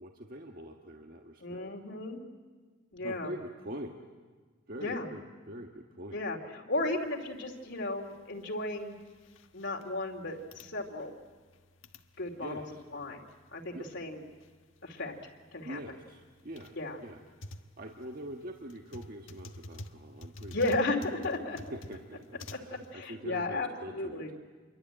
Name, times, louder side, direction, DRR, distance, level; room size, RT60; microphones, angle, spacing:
voice 1, 0.0-1.6 3.0-3.9 4.7-6.2 12.4-12.6 13.7-13.9 15.6-16.8 17.0-17.2 17.8-20.6 21.5-24.2, equal, 50° right, 3 dB, 1.5 m, -44 dB
voice 2, 1.4-2.2 2.9-3.3 4.8-5.1 6.1-9.0 9.5-11.1 12.2-12.6 12.9-13.2 13.5-14.2 14.8-15.1 15.5-16.0 16.7-17.0 20.5-21.6 22.5-24.3, left 2 dB, 65° left, 1 dB, 2.7 m, -34 dB
sound 1, 6.9-22.9, left 1 dB, 85° left, 1.4 m, -51 dB
27.5 x 23.0 x 8.9 m, 1.5 s
head